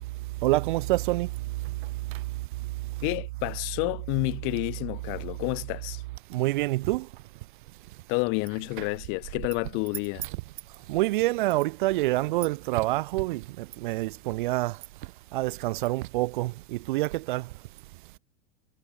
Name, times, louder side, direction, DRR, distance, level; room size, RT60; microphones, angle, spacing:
voice 1, 0.4-1.3 6.3-7.1 8.8-8.9 10.9-14.8 15.3-17.5, right 19 dB, 45° right, 0.5 m, -27 dB
voice 2, 3.0-6.0 8.1-10.3, left 37 dB, 35° left, 1.3 m, -30 dB
supercardioid pair, 175°, 35 cm